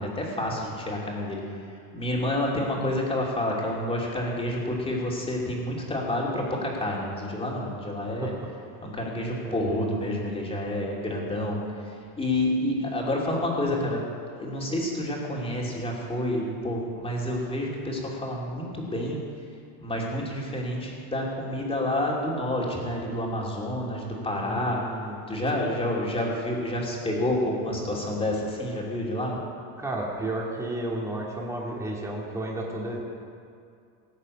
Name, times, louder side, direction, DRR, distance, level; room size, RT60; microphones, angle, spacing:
voice 1, 0.0-1.4 1.9-8.3 8.8-11.6 11.8-14.0 14.3-19.2 19.8-24.8 25.3-29.3, left 1 dB, 10° left, -3 dB, 2.8 m, -29 dB
voice 2, 8.1-8.4 9.4-9.7 24.4-25.2 29.8-33.0, right 1 dB, 5° right, -3 dB, 2.1 m, -32 dB
18.0 x 6.6 x 8.4 m, 2.3 s
cardioid pair, 145°, 46 cm